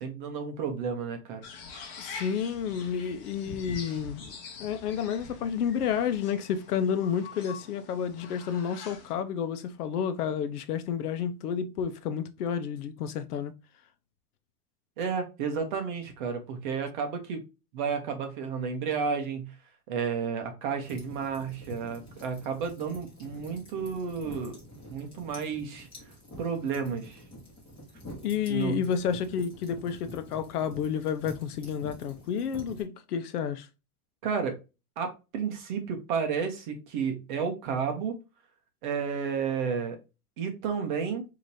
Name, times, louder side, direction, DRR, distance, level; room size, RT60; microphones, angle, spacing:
voice 1, 0.0-1.4 15.0-17.4 17.7-19.6 19.9-24.6 24.9-25.9 26.4-27.2 28.5-28.8 34.2-34.6 35.0-38.2 38.8-40.0 40.4-41.2, right 6 dB, 35° right, 0.8 m, -32 dB
sound 1, 1.4-9.1, left 4 dB, 40° left, 1.0 m, -45 dB
voice 2, 2.0-4.3 4.6-13.5 28.2-33.7, left 7 dB, 80° left, 0.8 m, -30 dB
sound 2, 20.8-32.8, equal, 10° left, 1.4 m, -47 dB
4.9 x 2.9 x 2.6 m
supercardioid pair, 180°, 45 cm